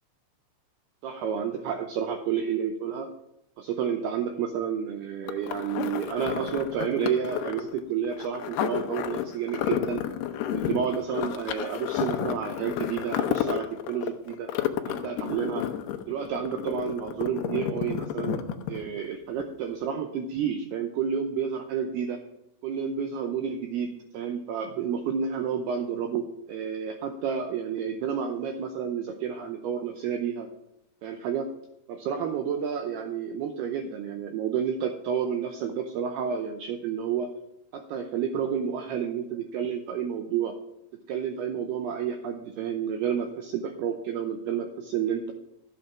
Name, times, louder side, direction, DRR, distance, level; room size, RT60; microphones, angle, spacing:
voice 1, 1.0-3.1 3.6-10.0 10.5-14.5 14.9-15.7 16.1-18.4 18.7-22.2 22.6-26.2 26.5-30.5 31.0-31.5 31.9-37.3 37.7-40.5 41.1-45.3, right 7 dB, 90° right, 5 dB, 2.2 m, -30 dB
sound 1, 5.3-19.1 19.4-19.5, left 11 dB, 85° left, 2.3 m, -31 dB
13.5 x 8.5 x 5.9 m, 0.82 s
omnidirectional pair, 5.7 m